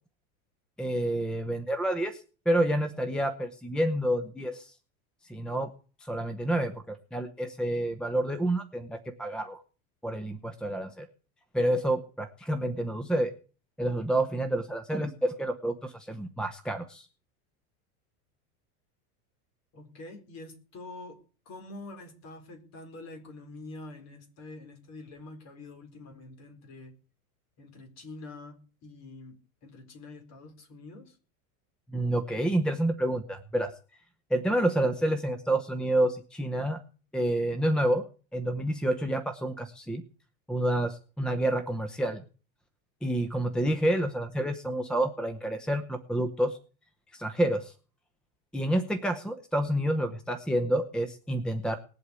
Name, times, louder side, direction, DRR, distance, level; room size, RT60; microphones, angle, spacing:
voice 1, 0.8-4.7 5.2-5.7 6.0-9.6 10.0-11.1 11.5-13.3 13.8-17.1 31.9-33.7 34.3-36.8 37.1-38.0 38.3-40.0 40.5-42.2 43.0-46.6 47.1-47.7 48.5-51.8, right 1 dB, ahead, 10 dB, 0.8 m, -28 dB
voice 2, 19.7-21.2 21.5-26.9 27.6-29.4 29.6-31.2, left 2 dB, 35° left, 6 dB, 4.5 m, -46 dB
19.5 x 8.0 x 8.3 m, 0.38 s
supercardioid pair, 150°, 44 cm